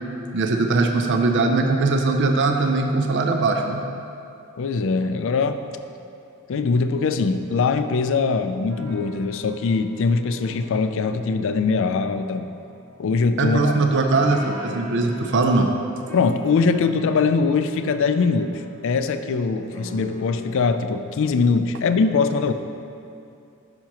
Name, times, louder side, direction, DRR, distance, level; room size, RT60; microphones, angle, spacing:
voice 1, 0.3-3.8 13.4-15.7, right 3 dB, 55° right, 4 dB, 0.5 m, -20 dB
voice 2, 4.6-5.6 6.5-12.5 13.0-13.8 16.1-22.5, left 4 dB, 60° left, 10 dB, 0.4 m, -22 dB
sound 1, 8.0-20.6, left 1 dB, 70° right, 1.7 m, -41 dB
10.5 x 5.8 x 2.9 m, 2.6 s
head